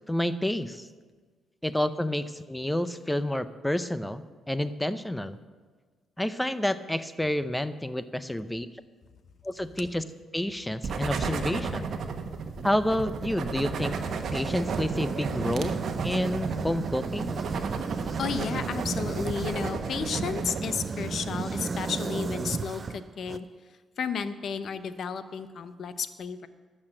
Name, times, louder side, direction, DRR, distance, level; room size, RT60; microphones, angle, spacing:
voice 1, 0.1-0.9 1.6-5.4 6.2-8.7 9.4-10.0 10.3-11.9 12.6-14.0 14.3-15.8 16.0-17.4, left 1 dB, 5° left, 14 dB, 0.6 m, -29 dB
sound 1, 10.8-20.6, right 5 dB, 60° right, 1.1 m, -33 dB
sound 2, 13.7-23.4, right 4 dB, 35° right, 0.5 m, -34 dB
voice 2, 18.2-23.5 24.0-26.5, left 6 dB, 60° left, 12 dB, 0.7 m, -33 dB
12.0 x 6.6 x 7.7 m, 1.4 s
cardioid pair, 90°, 0 cm